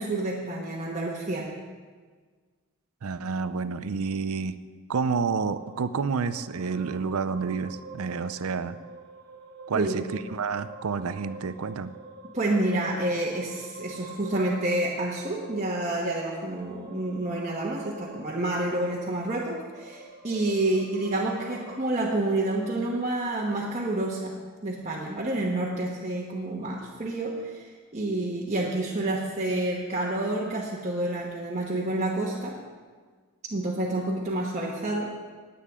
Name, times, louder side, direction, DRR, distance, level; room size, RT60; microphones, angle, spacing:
voice 1, 0.0-1.6 9.7-10.1 12.2-24.4 24.6-32.6 33.5-35.1, right 2 dB, 35° right, -5 dB, 1.2 m, -29 dB
voice 2, 3.0-4.5 4.9-8.8 9.7-11.9, right 5 dB, 85° right, 13 dB, 0.5 m, -29 dB
sound 1, 5.5-21.9, right 2 dB, 50° right, 1.7 m, -46 dB
19.5 x 8.6 x 3.7 m, 1.5 s
head